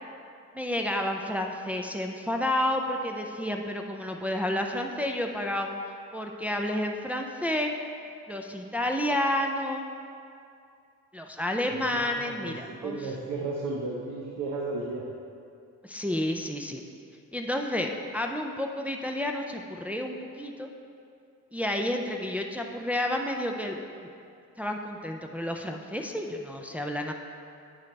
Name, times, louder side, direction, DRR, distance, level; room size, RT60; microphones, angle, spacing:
voice 1, 0.5-5.7 6.1-7.7 8.3-9.9 11.1-13.0 15.8-16.8 17.3-20.7 21.5-24.1 24.6-27.1, left 1 dB, 5° right, 2 dB, 0.4 m, -30 dB
voice 2, 11.7-15.0, right 3 dB, 85° right, -2 dB, 0.9 m, -34 dB
8.4 x 7.3 x 3.3 m, 2.5 s
cardioid pair, 90°, 30 cm